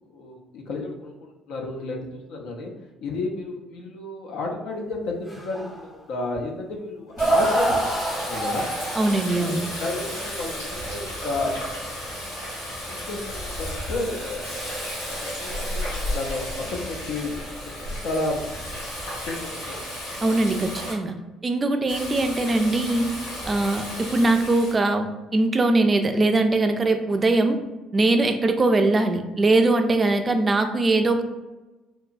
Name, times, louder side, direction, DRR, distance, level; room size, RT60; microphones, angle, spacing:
voice 1, 0.1-2.7 3.0-8.0 8.3-8.7 9.4-11.5 12.8-14.4 15.2-17.4 18.0-18.6 19.3-19.8, left 2 dB, 65° left, 0 dB, 0.5 m, -32 dB
sound 1, 5.3-5.8 6.4-6.5 7.2-9.2 11.4-11.5, right 1 dB, 5° right, 0.8 m, -25 dB
Water tap faucet, 7.2-20.9 21.9-24.7, equal, 85° left, 1.1 m, -33 dB
voice 2, 9.0-9.6 20.2-21.1 21.4-23.1 23.5-27.6 27.9-31.2, right 2 dB, 30° right, 6 dB, 0.3 m, -21 dB
2.9 x 2.2 x 2.5 m, 1.1 s
hypercardioid pair, 55°, 0 cm